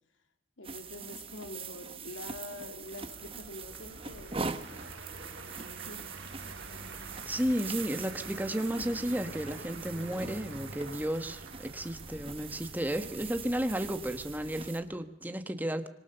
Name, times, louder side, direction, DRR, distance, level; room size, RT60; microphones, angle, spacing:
voice 1, 0.6-4.9 5.6-6.1, left 2 dB, 80° left, 2.5 m, -46 dB
sound 1, 0.6-14.8, right 5 dB, 30° right, 1.3 m, -43 dB
Vehicle, 2.7-15.0, right 1 dB, 55° right, 5.3 m, -48 dB
Applause, 3.6-14.2, right 5 dB, 85° right, 1.7 m, -52 dB
voice 2, 7.2-15.9, equal, 10° right, 1.4 m, -33 dB
25.5 x 23.5 x 6.9 m
head